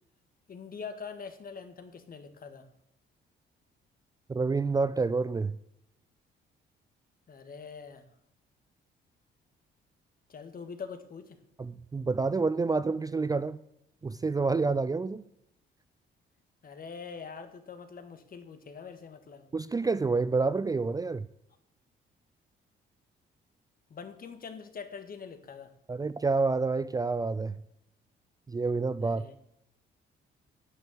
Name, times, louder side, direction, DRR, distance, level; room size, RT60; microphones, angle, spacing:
voice 1, 0.5-2.7 7.3-8.1 10.3-11.4 16.6-19.5 23.9-25.7 29.0-29.3, left 5 dB, 45° left, 1.7 m, -44 dB
voice 2, 4.3-5.6 11.6-13.6 14.0-15.2 19.5-21.3 25.9-27.6 28.5-29.2, right 4 dB, 20° right, 0.4 m, -28 dB
10.5 x 6.5 x 7.3 m
cardioid pair, 90°, 20 cm